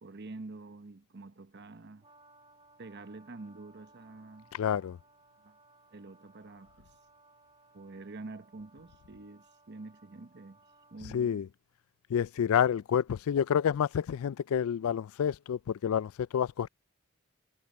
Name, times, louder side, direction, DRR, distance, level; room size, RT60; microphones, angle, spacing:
voice 1, 0.0-2.1 2.8-4.5 5.4-5.6 5.9-6.9 7.7-11.4, right 3 dB, 50° right, 0.9 m, -47 dB
Brass instrument, 2.0-11.0, right 2 dB, 25° right, 3.4 m, -62 dB
voice 2, 4.5-5.0 11.1-11.5 12.1-16.7, left 8 dB, 75° left, 0.3 m, -29 dB
head